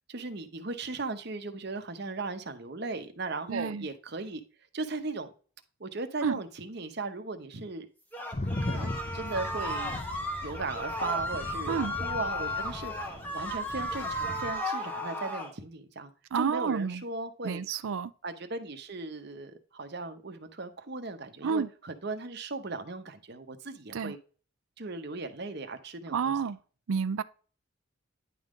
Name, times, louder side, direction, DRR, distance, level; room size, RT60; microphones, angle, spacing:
voice 1, 0.1-4.4 4.7-5.3 5.8-7.9 8.6-10.0 10.4-17.6 18.2-24.2 24.8-26.4, right 3 dB, 50° right, 0.9 m, -37 dB
voice 2, 3.5-3.9 6.2-6.4 11.7-11.9 16.3-17.0 17.4-18.1 21.4-21.7 23.9-24.1 26.1-26.6 26.9-27.2, right 6 dB, 75° right, 0.4 m, -30 dB
sound 1, 8.1-15.5, left 1 dB, 10° left, 1.0 m, -34 dB
sound 2, 8.3-14.6, left 2 dB, 30° left, 0.6 m, -38 dB
10.0 x 3.7 x 3.7 m
head